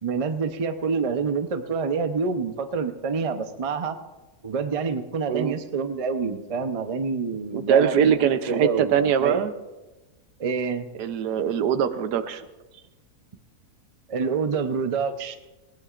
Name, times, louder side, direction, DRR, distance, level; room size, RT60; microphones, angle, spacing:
voice 1, 0.0-4.0 4.4-9.5 10.4-10.9 14.1-15.4, right 5 dB, 40° right, 8 dB, 0.5 m, -27 dB
voice 2, 7.5-9.5 11.0-12.4, right 8 dB, 85° right, 11 dB, 1.3 m, -22 dB
19.0 x 18.5 x 2.5 m, 1.1 s
omnidirectional pair, 1.7 m